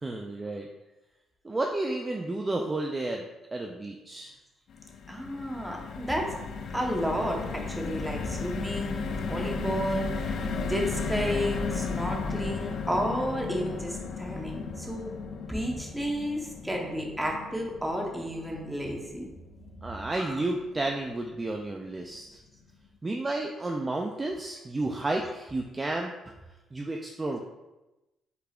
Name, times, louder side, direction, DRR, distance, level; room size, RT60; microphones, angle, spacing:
voice 1, 0.0-0.7 1.4-3.3 3.5-4.3 19.8-22.4 23.0-26.1 26.7-27.4, right 2 dB, 25° right, 1 dB, 0.4 m, -31 dB
sound 1, 4.7-21.0 21.4-21.5 21.8-22.0, left 4 dB, 65° left, 0.4 m, -35 dB
voice 2, 5.1-6.3 6.7-15.2 15.5-19.3 20.2-20.4, equal, 5° right, 0 dB, 1.0 m, -32 dB
5.6 x 3.9 x 2.4 m, 1.0 s
cardioid pair, 90°, 0 cm